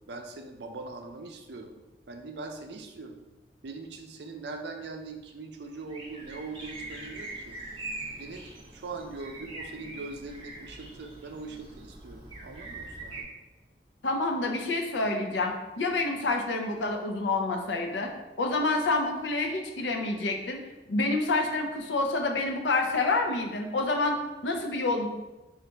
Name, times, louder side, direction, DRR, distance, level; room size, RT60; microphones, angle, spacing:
voice 1, 0.1-1.7 2.1-3.2 3.6-7.6 8.2-8.4 8.7-13.3, right 3 dB, 70° right, 5 dB, 0.5 m, -41 dB
sound 1, 5.7-13.2, right 2 dB, 30° right, 0.7 m, -42 dB
voice 2, 14.0-18.1 18.4-20.6 20.9-25.1, left 2 dB, 85° left, 3 dB, 0.6 m, -28 dB
3.9 x 2.5 x 4.4 m, 1.1 s
head